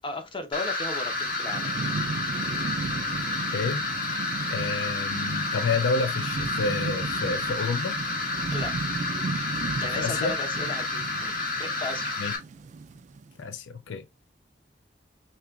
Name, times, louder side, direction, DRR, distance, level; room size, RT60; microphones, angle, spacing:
voice 1, 0.0-1.7 8.5-8.7 9.8-12.2, left 2 dB, 30° left, 0.7 m, -35 dB
sound 1, 0.5-12.4, left 3 dB, 50° left, 1.4 m, -30 dB
Thunderstorm / Rain, 1.1-13.3, right 4 dB, 40° right, 0.3 m, -35 dB
voice 2, 3.5-3.8 4.5-8.0 9.8-10.4 12.2-12.3 13.4-14.1, left 4 dB, 75° left, 0.4 m, -29 dB
4.9 x 2.9 x 2.3 m
head